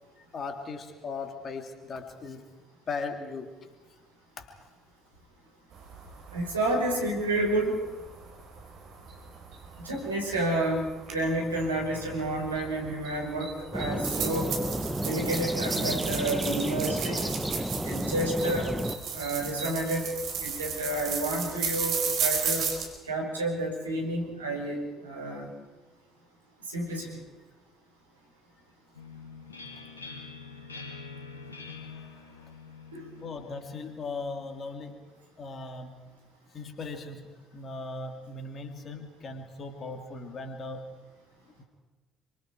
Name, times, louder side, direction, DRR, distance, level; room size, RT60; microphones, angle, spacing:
voice 1, 0.2-2.4 2.9-3.5 4.4-4.6 31.9-32.5 33.2-35.1 35.4-36.0 36.5-40.9 41.6-41.7, left 3 dB, 40° left, 5 dB, 3.1 m, -38 dB
sound 1, 5.7-22.8, right 6 dB, 50° right, 4.6 m, -35 dB
voice 2, 6.3-7.7 9.8-10.8 11.1-14.6 15.0-17.2 17.8-18.7 19.1-20.1 20.4-22.7 23.1-25.5 26.7-27.1 32.9-33.1, right 1 dB, 80° right, -1 dB, 5.1 m, -30 dB
sound 2, 13.7-19.0, right 1 dB, 5° right, 1.5 m, -31 dB
sound 3, 28.9-34.5, left 4 dB, 80° left, 2.4 m, -45 dB
27.5 x 25.0 x 4.7 m, 1.2 s
figure-of-eight pair, 50°, 0 cm